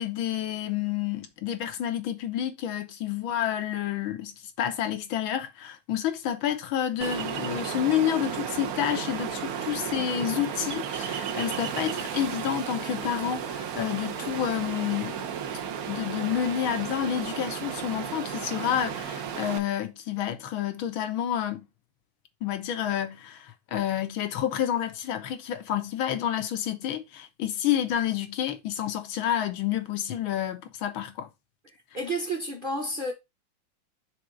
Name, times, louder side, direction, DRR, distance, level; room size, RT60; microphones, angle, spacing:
voice 1, 0.0-4.3 4.6-15.2 15.9-21.7 22.4-31.3, left 10 dB, 80° left, 1.7 m, -29 dB
Ocean, 7.0-19.6, right 8 dB, 60° right, 1.0 m, -33 dB
voice 2, 31.9-33.1, right 1 dB, 30° right, 1.1 m, -30 dB
6.4 x 3.5 x 4.7 m
omnidirectional pair, 2.2 m